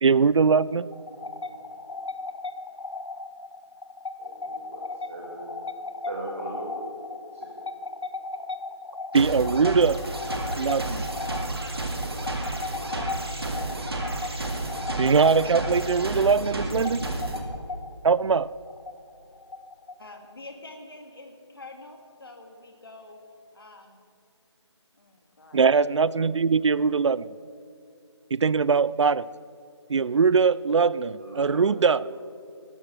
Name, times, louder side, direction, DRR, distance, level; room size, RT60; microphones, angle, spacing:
voice 1, 0.0-0.9 9.1-10.0 10.6-11.1 15.0-17.0 18.0-18.5 25.5-27.3 28.3-29.3 29.9-32.1, right 5 dB, 75° right, 19 dB, 0.4 m, -21 dB
sound 1, 0.9-20.3, left 3 dB, 85° left, 0.8 m, -37 dB
voice 2, 4.2-4.8 5.1-5.4 6.1-6.7 31.2-31.8 32.1-32.2, right 2 dB, 30° right, -4 dB, 1.7 m, -38 dB
sound 2, 9.1-17.4, right 2 dB, 55° right, 2.0 m, -31 dB
voice 3, 20.0-23.2 23.5-24.0 24.9-25.6, left 2 dB, 50° left, 3 dB, 2.1 m, -46 dB
18.0 x 13.5 x 3.3 m, 2.7 s
figure-of-eight pair, 180°, 15 cm